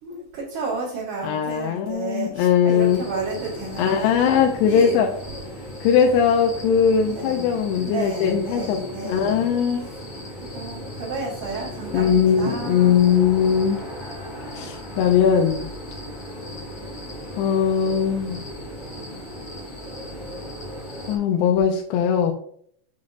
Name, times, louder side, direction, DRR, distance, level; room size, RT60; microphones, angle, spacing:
voice 1, 0.0-4.1 4.6-5.0 7.1-9.5 10.3-13.0, right 3 dB, 50° right, -8 dB, 3.0 m, -32 dB
voice 2, 1.2-3.1 3.8-5.1 5.8-9.8 11.9-13.8 14.5-15.7 17.4-18.4 21.1-22.3, left 7 dB, 85° left, 3 dB, 2.7 m, -20 dB
sound 1, 2.8-21.2, equal, 35° left, 0.7 m, -36 dB
7.4 x 5.8 x 2.5 m, 0.62 s
omnidirectional pair, 4.7 m